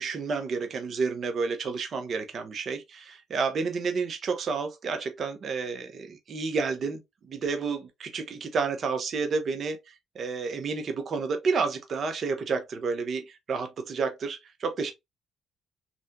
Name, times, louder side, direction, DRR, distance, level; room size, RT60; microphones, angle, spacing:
voice 1, 0.0-14.9, right 4 dB, 55° right, 0.9 m, -30 dB
3.4 x 2.6 x 2.7 m
supercardioid pair, 65°, 0 cm